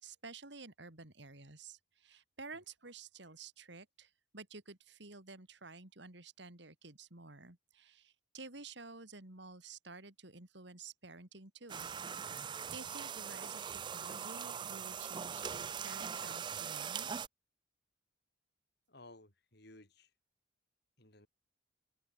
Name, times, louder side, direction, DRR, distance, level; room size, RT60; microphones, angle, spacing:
voice 1, 0.0-11.9 12.7-17.1, right 3 dB, 60° right, 3.1 m, -52 dB
sound 1, 11.7-17.3, right 7 dB, 25° right, 0.3 m, -41 dB
voice 2, 18.9-20.1 21.0-21.3, left 2 dB, 55° left, 7.0 m, -57 dB
head